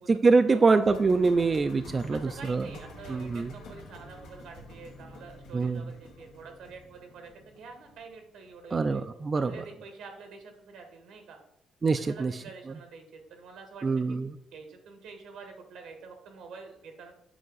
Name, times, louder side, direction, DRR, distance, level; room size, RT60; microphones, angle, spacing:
voice 1, 0.1-2.7 3.1-3.5 5.5-5.9 8.7-9.6 11.8-12.4 13.8-14.3, right 4 dB, 35° right, 9 dB, 0.4 m, -24 dB
sound 1, 0.8-8.8 9.1-9.2, left 1 dB, 90° left, 1.4 m, -48 dB
voice 2, 2.1-9.0 9.3-11.4 12.0-13.9 14.5-17.1, right 4 dB, 85° right, 4 dB, 1.5 m, -47 dB
7.7 x 4.6 x 4.0 m, 0.77 s
cardioid pair, 90°, 0 cm